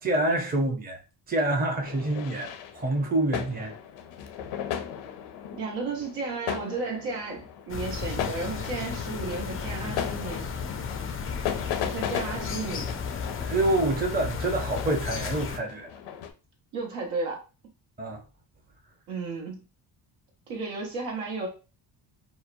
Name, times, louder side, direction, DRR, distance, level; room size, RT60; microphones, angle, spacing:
voice 1, 0.0-1.0 1.3-3.7 13.5-15.9 18.0-18.2, right 2 dB, 20° right, 0.6 m, -27 dB
sound 1, 1.8-16.3, left 9 dB, 80° left, 0.6 m, -37 dB
voice 2, 5.5-10.5 11.8-12.9 16.7-17.4 19.1-19.6 20.5-21.5, right 3 dB, 80° right, 1.0 m, -33 dB
sound 2, 7.7-15.6, left 5 dB, 30° left, 0.3 m, -34 dB
2.8 x 2.1 x 2.5 m
supercardioid pair, 60°, 50 cm